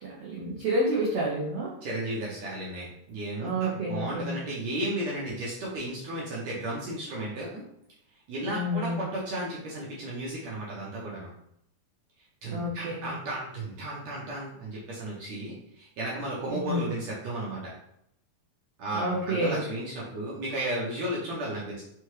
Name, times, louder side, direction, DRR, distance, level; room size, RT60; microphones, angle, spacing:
voice 1, 0.0-1.7 3.4-4.4 8.4-9.0 12.5-13.1 16.5-16.9 18.9-19.6, equal, 85° right, -4 dB, 1.3 m, -29 dB
voice 2, 1.8-7.6 8.3-11.3 12.4-17.7 18.8-21.8, right 1 dB, 70° right, -5 dB, 1.8 m, -34 dB
5.6 x 2.3 x 3.1 m, 0.74 s
omnidirectional pair, 3.7 m